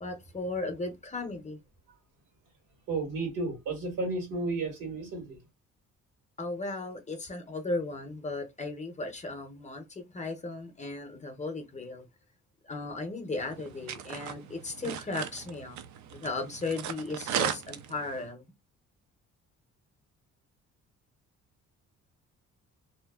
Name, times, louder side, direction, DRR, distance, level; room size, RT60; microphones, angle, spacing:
voice 1, 0.0-1.6 6.4-12.0 12.6-15.8 16.1-18.5, left 2 dB, 25° left, 0.7 m, -36 dB
voice 2, 2.9-5.4, right 3 dB, 85° right, 1.5 m, -32 dB
sound 1, 13.3-18.3, right 9 dB, 70° right, 0.5 m, -37 dB
2.7 x 2.0 x 2.2 m
cardioid pair, 90°, 30 cm